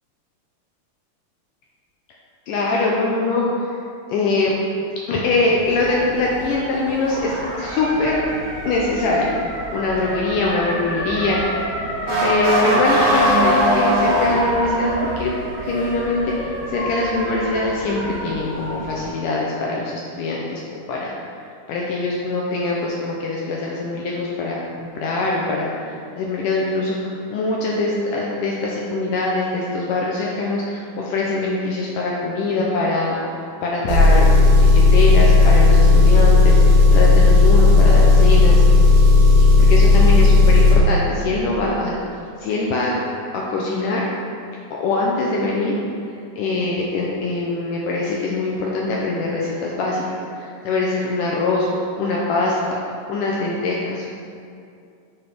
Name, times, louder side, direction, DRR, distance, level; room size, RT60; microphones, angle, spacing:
voice 1, 2.5-3.8 4.1-4.6 5.1-8.2 8.7-11.5 12.2-21.1 21.7-24.6 25.0-33.2 33.6-38.6 39.5-41.9 42.4-43.0 43.3-44.1 44.7-45.8 46.4-52.8 53.1-54.1, left 2 dB, 80° left, -3 dB, 2.0 m, -23 dB
Motor vehicle (road) / Siren, 5.6-19.1, equal, 50° right, 2.1 m, -24 dB
Engine, 33.9-40.8, left 3 dB, 75° right, 1.2 m, -12 dB
8.6 x 5.5 x 3.4 m, 2.5 s
omnidirectional pair, 4.3 m